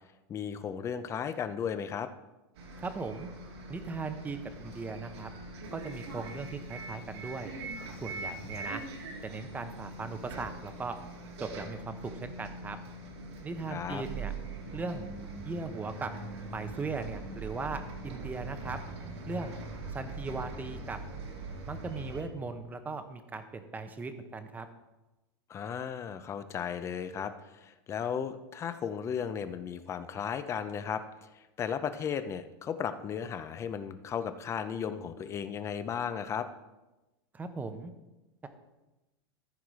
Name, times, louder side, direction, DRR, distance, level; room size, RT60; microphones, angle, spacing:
voice 1, 0.3-2.1 13.7-14.0 25.5-36.5, left 7 dB, 20° left, 11 dB, 0.5 m, -35 dB
Bus, 2.5-22.2, right 2 dB, 85° right, 2.3 m, -42 dB
voice 2, 2.8-3.3 3.7-5.3 5.7-7.5 8.0-8.8 9.2-11.0 11.4-12.8 13.4-14.3 14.7-15.1 15.4-16.1 16.5-18.8 19.3-19.5 19.9-21.0 21.7-24.7 37.3-37.9 38.4-38.5, right 4 dB, 10° right, 9 dB, 0.7 m, -38 dB
14.0 x 4.8 x 4.8 m, 1.0 s
supercardioid pair, 150°, 13 cm